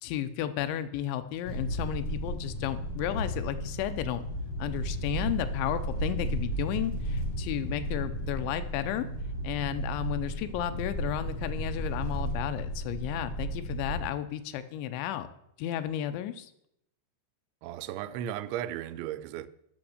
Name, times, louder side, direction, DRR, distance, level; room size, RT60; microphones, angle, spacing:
voice 1, 0.0-4.2 4.6-9.1 9.4-15.3 15.6-16.5, left 11 dB, 90° left, 3.0 m, -33 dB
sound 1, 1.4-14.0, right 1 dB, 70° left, 0.8 m, -34 dB
voice 2, 17.6-19.5, right 11 dB, 90° right, 2.9 m, -35 dB
8.6 x 6.2 x 6.5 m
omnidirectional pair, 5.1 m